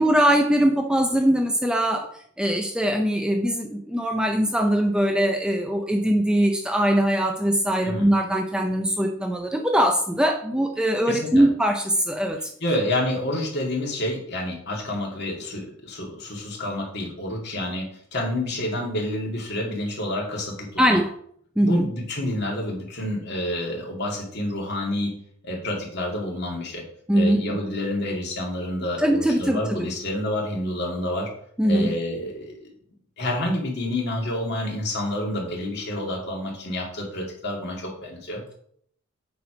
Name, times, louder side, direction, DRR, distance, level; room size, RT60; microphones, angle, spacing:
voice 1, 0.0-2.1 2.4-12.5 20.8-21.1 21.6-21.9 27.1-27.6 29.0-29.8 31.6-31.9, equal, 5° right, 3 dB, 0.5 m, -21 dB
voice 2, 11.1-11.4 12.6-21.0 21.6-25.1 25.4-26.8 27.1-31.3 31.6-32.7 33.2-38.4, left 1 dB, 50° left, -1 dB, 2.3 m, -29 dB
8.1 x 4.8 x 5.0 m, 0.65 s
head